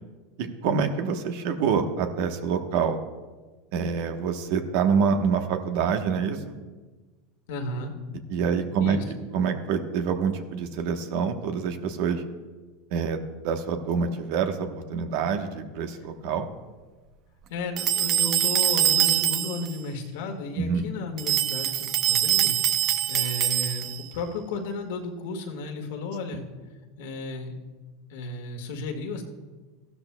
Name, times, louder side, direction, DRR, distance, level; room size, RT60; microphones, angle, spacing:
voice 1, 0.4-3.0 3.7-6.5 8.3-9.0 9.3-12.2 12.9-16.4 20.5-20.9 26.3-26.4, right 6 dB, 65° right, 6 dB, 1.1 m, -26 dB
voice 2, 7.5-7.9 8.8-9.0 17.5-22.5 23.1-26.4 27.0-27.6 28.1-29.2, left 3 dB, 75° left, 3 dB, 1.7 m, -33 dB
sound 1, 17.8-19.7 21.2-24.1, right 11 dB, 45° right, 0.6 m, -24 dB
15.0 x 12.0 x 2.3 m, 1.3 s
supercardioid pair, 120°, 0 cm